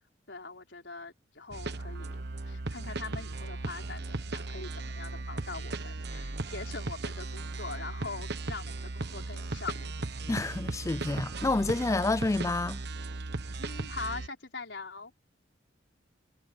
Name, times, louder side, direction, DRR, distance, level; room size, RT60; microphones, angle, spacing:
voice 1, 0.3-9.9 13.6-15.1, left 4 dB, 70° left, 5.3 m, -42 dB
sound 1, 1.5-14.3, right 2 dB, 60° right, 1.3 m, -37 dB
voice 2, 10.3-12.8, left 2 dB, 15° left, 0.4 m, -29 dB
head